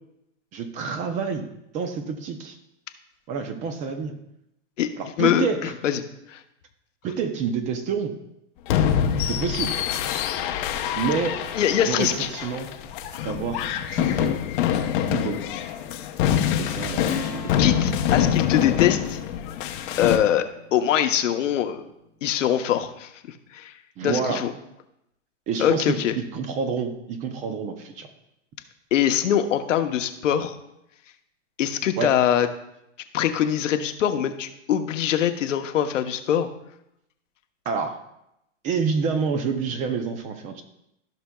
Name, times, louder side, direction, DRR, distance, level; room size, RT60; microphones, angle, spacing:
voice 1, 0.5-1.5 1.7-2.6 3.3-4.1 5.0-5.7 7.0-8.1 9.2-9.8 10.9-11.4 11.8-12.7 13.2-13.6 13.9-14.4 15.1-15.4 16.6-17.1 17.4-17.7 24.0-24.4 25.5-26.0 26.3-28.1 32.0-32.1 37.7-38.0 38.6-40.6, right 5 dB, 20° right, 8 dB, 0.5 m, -28 dB
voice 2, 5.2-6.0 6.3-6.4 11.5-12.3 17.6-19.2 20.0-21.8 22.2-23.1 23.5-23.7 24.0-24.5 25.6-26.1 28.9-30.6 31.6-32.5 33.1-36.5, left 10 dB, 75° left, 7 dB, 1.0 m, -23 dB
sound 1, 8.7-20.2, left 9 dB, 40° left, 0.7 m, -25 dB
Strum, 17.0-21.9, left 5 dB, 20° left, 1.1 m, -39 dB
14.5 x 6.0 x 2.3 m, 0.82 s
hypercardioid pair, 140°, 38 cm